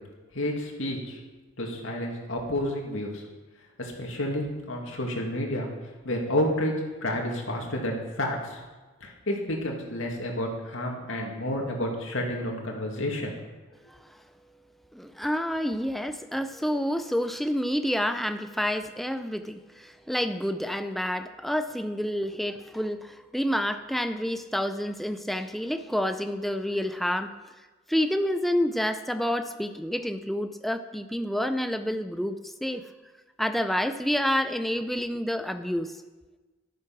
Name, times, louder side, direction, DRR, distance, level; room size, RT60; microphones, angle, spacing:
voice 1, 0.3-1.2 1.6-3.2 3.8-5.7 6.0-6.7 7.0-8.6 9.0-13.3, left 1 dB, 80° left, 0 dB, 2.4 m, -30 dB
voice 2, 14.9-27.3 27.9-32.8 33.4-35.9, equal, ahead, 8 dB, 0.5 m, -28 dB
12.0 x 9.4 x 6.1 m, 1.2 s
head